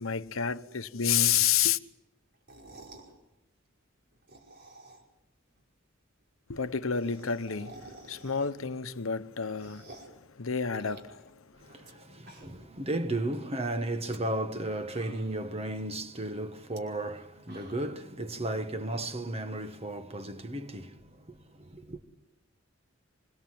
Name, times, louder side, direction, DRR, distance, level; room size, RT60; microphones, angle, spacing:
voice 1, 0.0-1.8 6.5-11.9, left 8 dB, 80° left, 1.1 m, -30 dB
sound 1, 2.3-3.1 4.1-5.2 5.6-5.7 5.9-6.0 6.2-6.3 6.5-8.7 9.1-10.2 10.7-11.9 12.2-12.8 13.1-13.2 13.9-14.2 14.6-14.7 14.9-15.6 16.6-16.8 17.2-18.0, right 2 dB, 55° right, 5.4 m, -52 dB
voice 2, 11.6-22.0, right 1 dB, 30° right, 1.6 m, -34 dB
26.0 x 25.0 x 7.7 m
head